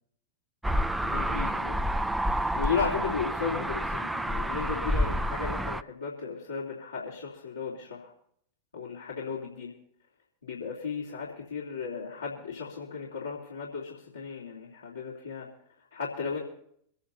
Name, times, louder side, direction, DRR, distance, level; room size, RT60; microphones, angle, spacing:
sound 1, 0.6-5.8, equal, 5° right, 0.5 m, -29 dB
voice 1, 1.0-1.8 2.5-8.1 8.7-9.7 10.4-15.5 15.9-16.4, left 6 dB, 75° left, -6 dB, 3.3 m, -35 dB
25.0 x 10.0 x 4.1 m, 0.66 s
figure-of-eight pair, 90°, 0 cm